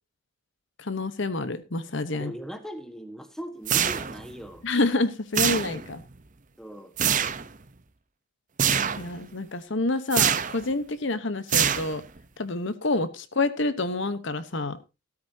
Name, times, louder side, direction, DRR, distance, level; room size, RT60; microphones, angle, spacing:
voice 1, 0.8-2.3 4.6-6.0 9.0-12.0 12.4-14.8, left 2 dB, 55° left, 13 dB, 1.0 m, -28 dB
voice 2, 2.1-4.6 6.6-6.9, equal, ahead, 8 dB, 1.3 m, -39 dB
sound 1, 3.7-4.3 5.3-6.0 7.0-7.5 8.6-9.1 10.1-10.6 11.5-12.2, right 8 dB, 35° right, 0.8 m, -24 dB
13.5 x 13.0 x 2.8 m, 0.27 s
head